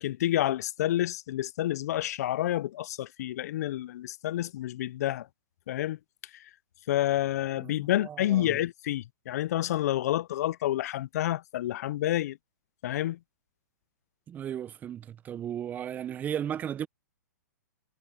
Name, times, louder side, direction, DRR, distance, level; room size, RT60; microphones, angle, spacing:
voice 1, 0.0-5.3 5.7-6.0 6.9-12.4 12.8-13.2, left 13 dB, 60° left, 0.4 m, -29 dB
voice 2, 7.6-8.6 14.3-16.9, right 9 dB, 15° right, 0.5 m, -35 dB
hypercardioid pair, 140°, 10 cm